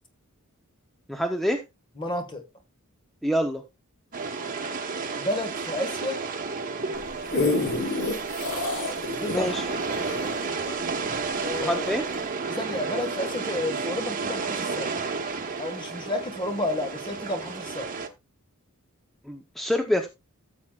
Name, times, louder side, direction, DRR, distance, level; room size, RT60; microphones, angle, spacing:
voice 1, 1.1-1.6 3.2-3.6 9.3-9.7 11.6-12.0 19.3-20.1, equal, ahead, 0.7 m, -26 dB
voice 2, 2.0-2.4 5.2-6.2 9.0-9.6 11.4-11.9 12.5-14.9 15.6-17.9, left 1 dB, 20° left, 1.6 m, -31 dB
sound 1, 4.1-18.1, right 4 dB, 40° right, 1.2 m, -32 dB
sound 2, 6.9-11.6 12.1-12.2, left 2 dB, 55° left, 5.9 m, -29 dB
15.0 x 7.4 x 2.4 m
head